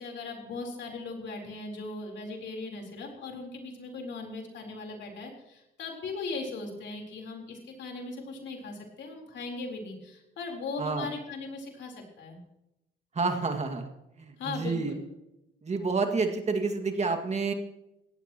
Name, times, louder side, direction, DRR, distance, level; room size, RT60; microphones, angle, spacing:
voice 1, 0.0-12.4 14.4-15.0, left 3 dB, 65° left, 1 dB, 3.9 m, -38 dB
voice 2, 13.1-13.9 14.2-14.9 15.6-17.5, right 4 dB, 35° right, 5 dB, 2.0 m, -29 dB
18.0 x 15.0 x 3.0 m, 0.89 s
cardioid pair, 90°, 20 cm